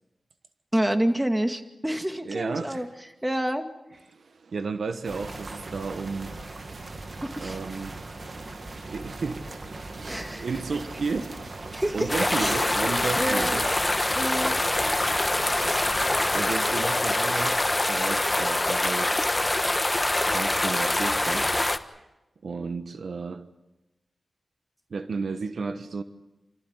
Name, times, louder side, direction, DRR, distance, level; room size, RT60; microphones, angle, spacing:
voice 1, 0.7-2.9 3.2-3.7 7.2-7.6 10.1-10.5 11.7-12.6 13.2-13.6 14.1-14.6, right 1 dB, 15° right, 2.4 m, -28 dB
voice 2, 2.2-2.9 4.1-6.3 7.4-8.0 8.9-9.4 9.9-11.3 11.9-13.6 16.3-19.2 20.3-21.5 22.4-23.4 24.9-26.0, right 4 dB, 80° right, 1.2 m, -33 dB
sound 1, 5.0-16.5, right 2 dB, 60° right, 2.3 m, -39 dB
sound 2, 12.1-21.8, left 1 dB, 20° left, 1.3 m, -25 dB
28.5 x 14.5 x 9.8 m
cardioid pair, 55°, 0 cm